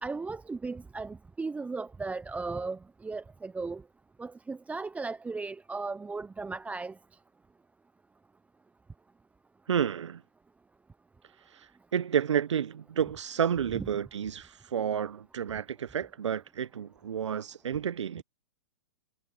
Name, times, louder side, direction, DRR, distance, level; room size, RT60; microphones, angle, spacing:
voice 1, 0.0-3.8 4.2-6.9 13.7-13.8, right 3 dB, 10° right, 1.0 m, -36 dB
voice 2, 9.7-10.2 11.5-18.2, right 8 dB, 70° right, 1.4 m, -30 dB
figure-of-eight pair, 110°, 15 cm